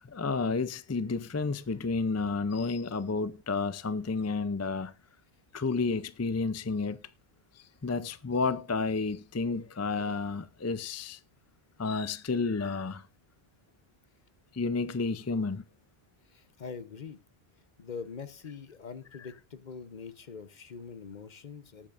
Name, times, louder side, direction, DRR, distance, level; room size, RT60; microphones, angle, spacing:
voice 1, 0.0-4.9 5.5-7.0 7.5-11.2 11.8-13.1 14.5-15.7 19.2-19.3, left 4 dB, 25° left, 0.3 m, -31 dB
voice 2, 16.3-17.2 17.8-21.9, left 5 dB, 50° left, 1.0 m, -43 dB
19.0 x 8.6 x 2.5 m
omnidirectional pair, 1.0 m